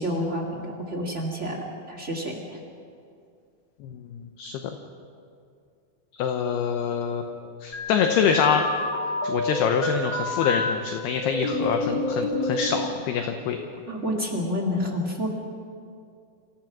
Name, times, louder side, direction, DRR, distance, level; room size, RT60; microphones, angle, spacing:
voice 1, 0.0-2.6 13.9-15.3, equal, 45° right, 0 dB, 0.9 m, -29 dB
voice 2, 3.8-4.7 6.1-8.6 9.2-13.6, left 7 dB, 75° left, 5 dB, 2.6 m, -26 dB
sound 1, 7.7-10.7 11.2-12.8, left 2 dB, 30° left, 2.4 m, -28 dB
28.0 x 16.0 x 6.1 m, 2.4 s
omnidirectional pair, 5.4 m